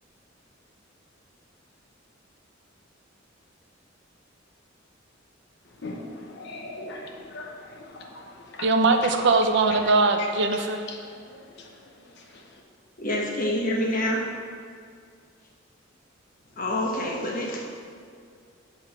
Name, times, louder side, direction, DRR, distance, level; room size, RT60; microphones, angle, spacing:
voice 1, 5.8-8.7 10.2-10.3 10.9-11.0 11.6-11.7, left 2 dB, 60° left, 1 dB, 0.8 m, -39 dB
voice 2, 8.6-10.8, right 3 dB, 60° right, 6 dB, 0.5 m, -21 dB
voice 3, 13.0-14.3 16.6-17.6, left 1 dB, 45° left, -2 dB, 1.1 m, -27 dB
7.8 x 3.4 x 5.8 m, 2.2 s
head